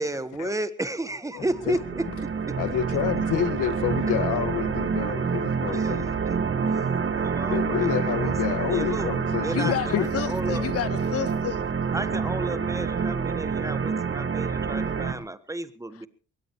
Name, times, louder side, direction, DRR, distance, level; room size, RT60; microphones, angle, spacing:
voice 1, 0.0-2.5 5.7-6.1 6.7-9.1 9.4-10.6 11.9-16.1, right 2 dB, 10° right, 1.4 m, -33 dB
voice 2, 1.3-1.8 2.6-6.1 7.5-10.1, left 10 dB, 85° left, 1.8 m, -28 dB
sound 1, 1.4-15.1, right 5 dB, 40° right, 1.9 m, -27 dB
voice 3, 9.5-11.6, left 11 dB, 50° left, 0.7 m, -30 dB
22.5 x 18.5 x 3.1 m
cardioid pair, 90°, 30 cm